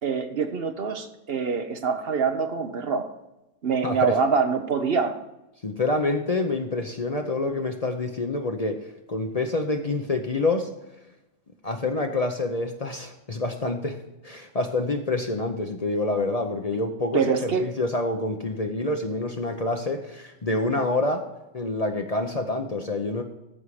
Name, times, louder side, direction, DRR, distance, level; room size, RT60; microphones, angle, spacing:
voice 1, 0.0-3.1 3.6-5.2 17.1-17.6, right 5 dB, 55° right, 7 dB, 1.0 m, -25 dB
voice 2, 3.8-4.1 5.6-10.7 11.6-14.0 14.2-21.2 21.5-23.2, left 2 dB, 35° left, 5 dB, 0.8 m, -27 dB
14.0 x 5.6 x 4.8 m, 0.95 s
omnidirectional pair, 1.3 m